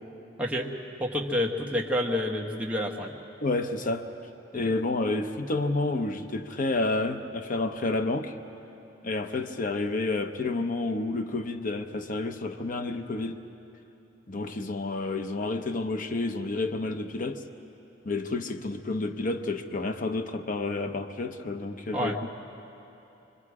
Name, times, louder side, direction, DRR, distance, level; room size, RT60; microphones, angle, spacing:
voice 1, 0.4-0.7 1.0-3.1 4.5-4.7 21.9-22.2, left 1 dB, 5° right, -1 dB, 1.3 m, -29 dB
voice 2, 3.4-4.1 4.5-8.4 9.0-13.5 14.3-17.4 18.0-22.3, left 2 dB, 45° left, 7 dB, 0.8 m, -30 dB
25.0 x 24.0 x 4.9 m, 3.0 s
head